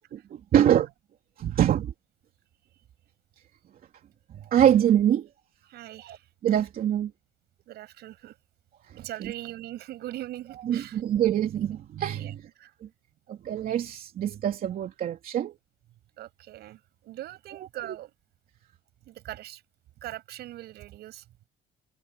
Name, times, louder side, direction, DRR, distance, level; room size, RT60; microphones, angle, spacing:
voice 1, 0.1-0.9 1.4-1.9 4.5-5.3 6.0-6.2 6.4-7.1 9.2-9.3 10.6-12.5 13.3-15.5 17.5-18.0, right 10 dB, 60° right, 3.0 m, -24 dB
voice 2, 5.7-6.2 7.7-8.3 9.0-11.0 12.1-12.7 16.2-18.1 19.1-19.6 20.0-21.2, right 14 dB, 75° right, 7.6 m, -41 dB
cardioid pair, 110°, 17 cm